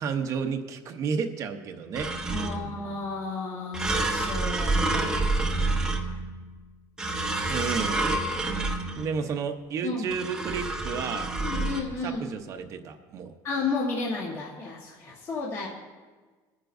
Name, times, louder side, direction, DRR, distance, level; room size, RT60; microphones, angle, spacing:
voice 1, 0.0-2.1 2.4-2.8 7.5-8.1 8.9-11.3 12.0-13.3, right 6 dB, 40° right, 5 dB, 0.8 m, -32 dB
sound 1, 1.9-2.8 3.7-6.4 7.0-9.2 10.1-11.8, right 2 dB, 10° right, 0.9 m, -28 dB
voice 2, 2.3-5.4 9.8-10.1 11.4-12.2 13.4-15.7, left 3 dB, 30° left, -3 dB, 1.3 m, -32 dB
22.5 x 9.7 x 2.6 m, 1.4 s
cardioid pair, 165°, 9 cm